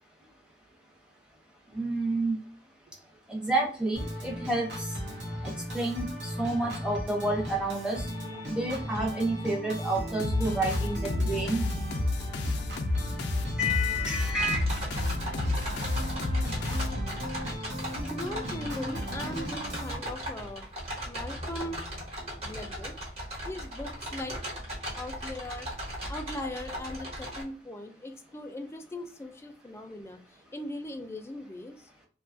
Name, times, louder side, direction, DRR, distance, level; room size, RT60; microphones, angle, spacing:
voice 1, 1.7-2.4 3.3-4.9 5.4-8.1 8.5-11.6 13.6-14.6, right 1 dB, 5° right, -1 dB, 0.7 m, -29 dB
Organ, 4.0-20.0, equal, 75° right, 0.9 m, -37 dB
sound 1, 10.2-17.4, left 2 dB, 80° left, 0.4 m, -31 dB
sound 2, 14.3-27.4, equal, 35° right, 1.1 m, -38 dB
voice 2, 18.0-20.7 21.1-21.8 22.4-23.0 23.4-24.4 25.0-25.7 26.1-30.2 30.5-31.9, left 1 dB, 15° left, 6 dB, 0.3 m, -39 dB
2.7 x 2.3 x 2.5 m, 0.41 s
head